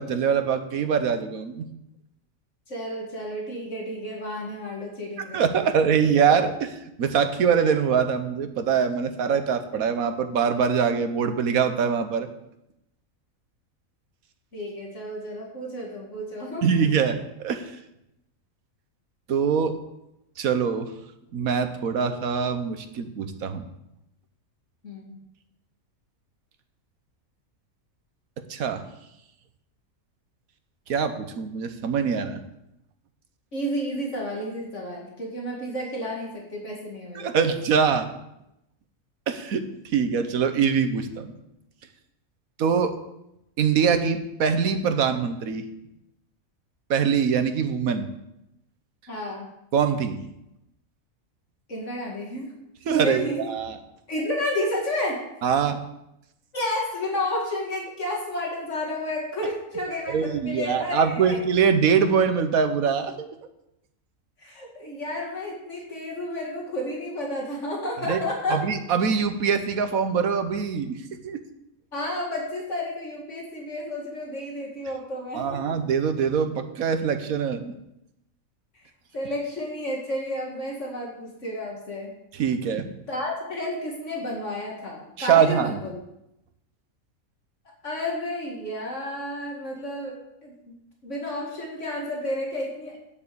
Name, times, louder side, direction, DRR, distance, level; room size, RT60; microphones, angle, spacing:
voice 1, 0.0-1.7 5.3-12.3 16.6-17.7 19.3-19.8 20.4-20.9 21.3-23.7 28.5-28.8 30.9-32.4 37.1-38.1 39.3-39.6 39.9-41.3 42.6-42.9 43.6-45.7 46.9-48.1 49.7-50.2 52.9-53.8 55.4-55.8 60.1-63.3 68.0-68.2 68.5-71.0 71.2-71.4 75.3-77.7 82.3-82.9 85.2-85.8, right 6 dB, 90° right, 9 dB, 1.4 m, -23 dB
voice 2, 2.7-5.5 14.5-16.8 24.8-25.1 33.5-37.5 49.1-49.5 51.7-52.5 52.9-53.4 54.1-55.2 56.5-61.3 64.4-68.6 71.9-75.8 79.1-82.1 83.1-86.0 87.8-90.2 90.4-90.7 91.0-93.0, left 1 dB, 60° left, -2 dB, 2.4 m, -31 dB
9.5 x 7.3 x 6.9 m, 0.85 s
omnidirectional pair, 1.4 m